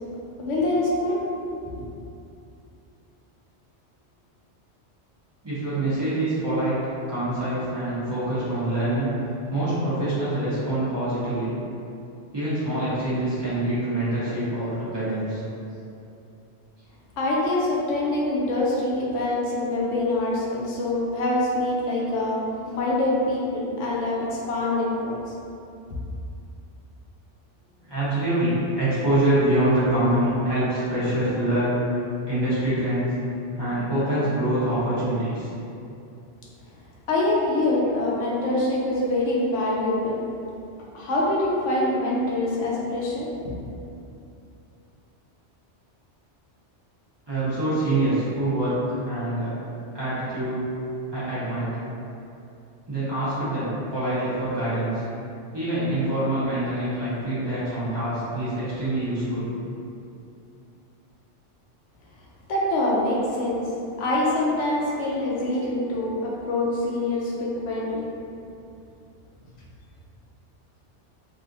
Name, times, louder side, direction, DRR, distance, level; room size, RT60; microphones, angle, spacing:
voice 1, 0.4-1.2 17.2-25.3 37.1-40.2 40.9-43.5 62.5-63.7 64.0-68.0, left 1 dB, 85° left, -4 dB, 1.0 m, -25 dB
voice 2, 5.4-6.8 7.1-9.1 9.5-11.5 12.3-15.4 27.8-31.8 32.3-33.1 33.5-35.5 47.3-48.8 49.0-49.5 49.9-50.7 51.1-51.8 52.9-55.0 55.5-59.4, right 1 dB, 25° right, -13 dB, 0.9 m, -25 dB
3.3 x 2.5 x 2.6 m, 2.7 s
omnidirectional pair, 1.2 m